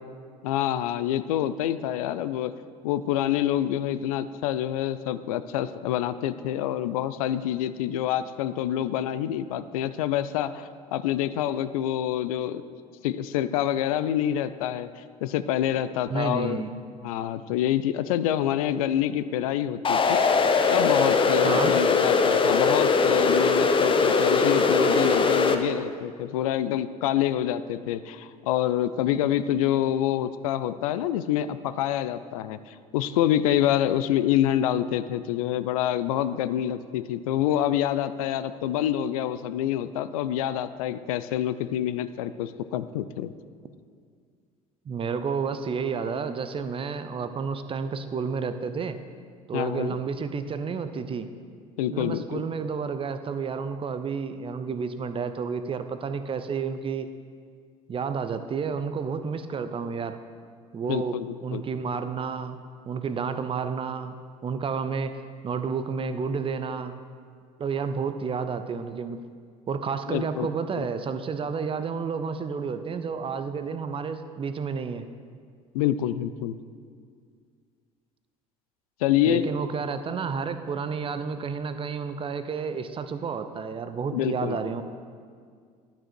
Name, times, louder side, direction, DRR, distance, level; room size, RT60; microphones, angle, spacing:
voice 1, 0.4-2.5 2.8-12.6 13.0-16.6 17.0-20.2 20.7-43.3 49.5-50.0 51.8-52.4 60.9-61.6 70.1-70.5 70.8-70.9 75.7-76.6 79.0-79.4 84.1-84.7, left 11 dB, 70° left, 13 dB, 0.4 m, -27 dB
voice 2, 16.1-16.7 21.4-21.7 44.9-49.0 49.5-51.3 51.9-57.1 57.9-60.2 60.7-62.6 62.9-64.2 64.4-65.1 65.4-66.9 67.6-69.2 69.7-75.1 79.3-84.8, right 5 dB, 30° right, 10 dB, 0.6 m, -30 dB
sound 1, 19.8-25.5, left 4 dB, 25° left, 0.8 m, -21 dB
11.5 x 6.2 x 4.5 m, 2.1 s
figure-of-eight pair, 60°, 19 cm